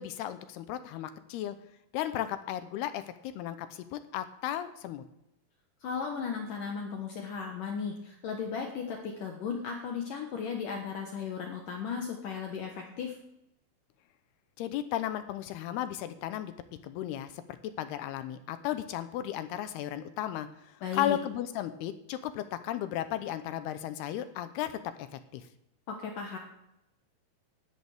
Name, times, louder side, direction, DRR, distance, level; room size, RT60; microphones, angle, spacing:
voice 1, 0.0-1.6 1.9-5.0 14.6-16.5 16.8-25.4, left 12 dB, 80° left, 11 dB, 2.7 m, -35 dB
voice 2, 5.8-13.2 20.8-21.2 25.9-26.4, left 6 dB, 65° left, 1 dB, 2.6 m, -36 dB
17.0 x 12.5 x 3.5 m, 0.83 s
omnidirectional pair, 4.8 m